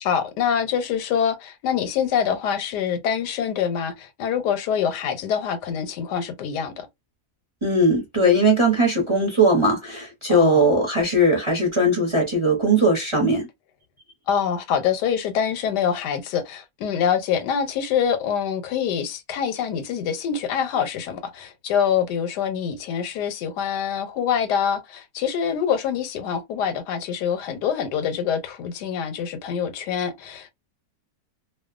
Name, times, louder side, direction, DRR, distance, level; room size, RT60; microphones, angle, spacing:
voice 1, 0.0-6.9 10.3-10.6 14.3-30.5, left 8 dB, 85° left, 1.2 m, -25 dB
voice 2, 7.6-13.5, right 1 dB, 25° right, 0.7 m, -19 dB
2.5 x 2.3 x 2.3 m
omnidirectional pair, 1.7 m